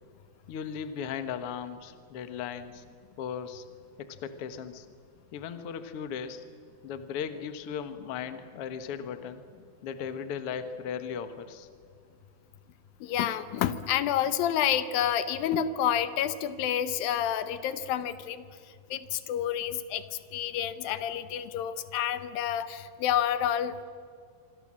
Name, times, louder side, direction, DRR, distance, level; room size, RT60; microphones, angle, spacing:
voice 1, 0.5-2.8 3.2-3.6 4.0-4.9 5.3-6.4 6.8-9.4 9.8-11.7, left 7 dB, 55° left, 9 dB, 1.8 m, -37 dB
voice 2, 13.0-18.5 18.9-20.0 20.3-23.8, left 10 dB, 80° left, 12 dB, 2.7 m, -29 dB
25.5 x 25.5 x 7.6 m, 2.2 s
omnidirectional pair, 4.2 m